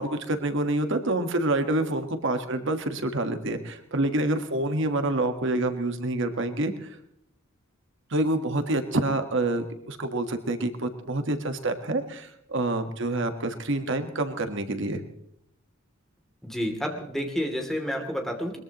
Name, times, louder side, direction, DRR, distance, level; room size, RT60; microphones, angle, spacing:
voice 1, 0.0-7.0 8.1-15.0, right 2 dB, 65° right, 7 dB, 1.5 m, -27 dB
voice 2, 16.4-18.6, equal, ahead, 2 dB, 2.8 m, -30 dB
22.0 x 21.5 x 3.0 m, 0.73 s
head